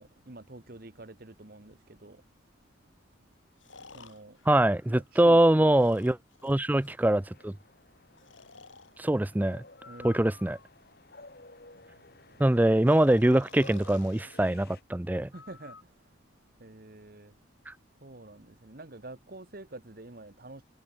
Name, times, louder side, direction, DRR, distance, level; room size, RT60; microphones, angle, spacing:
voice 1, 0.0-2.2 3.9-4.4 4.9-6.0 9.9-10.3 11.6-12.4 15.3-16.2 16.6-17.4 18.0-20.6, right 2 dB, 50° right, 1.4 m, -48 dB
Breathing, 1.7-1.8 3.6-5.3 5.7-7.0 8.2-8.9 9.7-10.9 12.9-14.3 15.3-15.8, left 4 dB, 85° left, 6.7 m, -52 dB
voice 2, 4.5-6.2 6.4-7.5 9.0-9.6 10.0-10.6 12.4-15.3 17.7-17.8, right 1 dB, 10° right, 0.4 m, -23 dB
sound 1, 7.1-14.8, left 2 dB, 50° left, 2.6 m, -54 dB
head